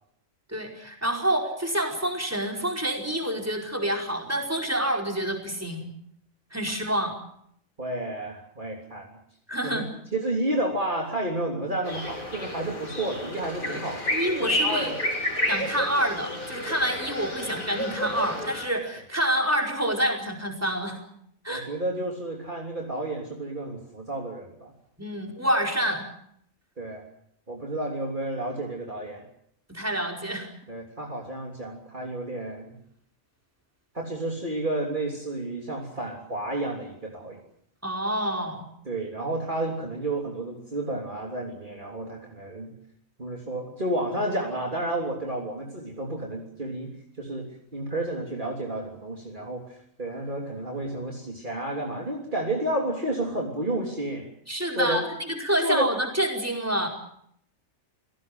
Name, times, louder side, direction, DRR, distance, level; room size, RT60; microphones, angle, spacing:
voice 1, 0.5-5.9 6.5-7.1 9.5-9.8 13.6-13.8 14.1-14.9 15.5-21.0 21.4-21.6 25.0-26.1 29.7-30.5 37.8-38.6 54.5-56.9, right 1 dB, 10° right, 1 dB, 4.8 m, -27 dB
voice 2, 7.8-9.1 9.6-9.9 10.1-14.0 14.4-14.9 15.5-15.6 21.5-24.7 26.8-27.0 27.5-29.2 30.7-32.8 33.9-37.4 38.9-42.7 43.2-54.3 54.8-55.0 55.6-55.9, right 1 dB, 35° right, 0 dB, 3.6 m, -31 dB
sound 1, 11.8-18.7, left 1 dB, 40° left, 5.5 m, -30 dB
28.5 x 17.5 x 7.8 m, 0.70 s
omnidirectional pair, 1.4 m